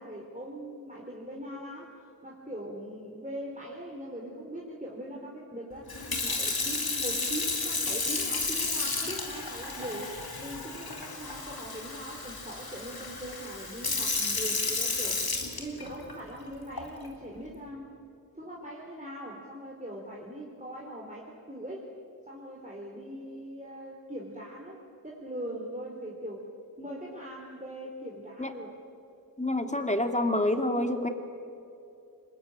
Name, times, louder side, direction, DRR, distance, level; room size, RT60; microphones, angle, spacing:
voice 1, 0.0-2.0 2.2-5.9 6.2-15.3 15.6-17.9 18.3-21.8 22.3-24.8 25.0-26.5 26.8-28.7, right 1 dB, 20° right, -3 dB, 4.3 m, -41 dB
Sink (filling or washing) / Fill (with liquid), 5.9-16.1 16.8-17.1, left 3 dB, 90° left, 3.2 m, -32 dB
voice 2, 29.4-31.1, left 1 dB, 20° left, 6 dB, 2.6 m, -27 dB
26.0 x 22.0 x 9.1 m, 2.6 s
wide cardioid pair, 40°, 36 cm